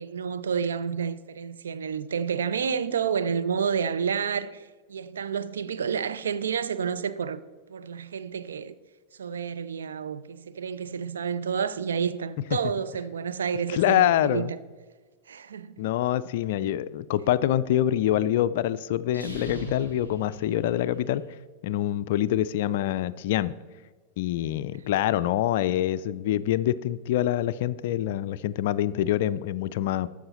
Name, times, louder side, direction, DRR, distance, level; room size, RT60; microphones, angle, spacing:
voice 1, 0.0-4.6 4.9-7.4 7.7-8.7 9.2-14.6 15.3-15.8, right 7 dB, 65° right, 0.4 m, -29 dB
voice 2, 13.7-14.5 15.8-21.2 21.6-23.5 24.2-30.1, left 12 dB, 55° left, 0.3 m, -25 dB
sound 1, 19.0-21.2, right 1 dB, 90° right, 1.8 m, -40 dB
13.5 x 5.0 x 4.0 m
figure-of-eight pair, 90°, 0 cm